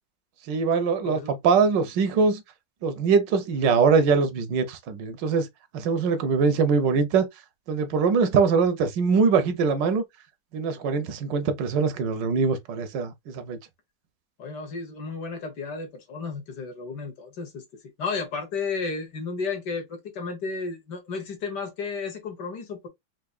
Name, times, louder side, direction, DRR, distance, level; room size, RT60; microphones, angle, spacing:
voice 1, 0.5-2.4 2.8-5.5 5.7-7.3 7.7-10.0 10.5-13.6, right 5 dB, 80° right, 1.4 m, -22 dB
voice 2, 1.0-1.4 14.4-17.6 18.0-22.9, left 4 dB, 70° left, 1.8 m, -33 dB
4.8 x 2.6 x 2.3 m
omnidirectional pair, 1.9 m